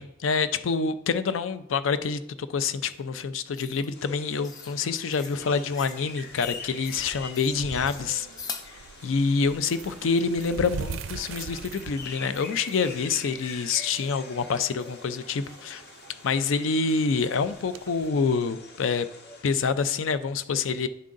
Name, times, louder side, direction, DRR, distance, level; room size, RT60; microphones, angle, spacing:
voice 1, 0.0-8.3 9.0-15.8 16.2-19.1 19.4-20.9, left 5 dB, 80° left, 13 dB, 0.4 m, -27 dB
sound 1, 2.8-3.0 3.5-3.9 4.4-4.8 5.1-5.4 5.7-6.0 6.4-7.0 7.3-7.5 7.9-8.7, left 5 dB, 20° left, 0.4 m, -41 dB
sound 2, 3.9-19.4, left 4 dB, 55° left, 0.9 m, -45 dB
sound 3, 5.3-18.1, right 6 dB, 90° right, 0.4 m, -43 dB
9.5 x 3.7 x 3.8 m, 0.81 s
head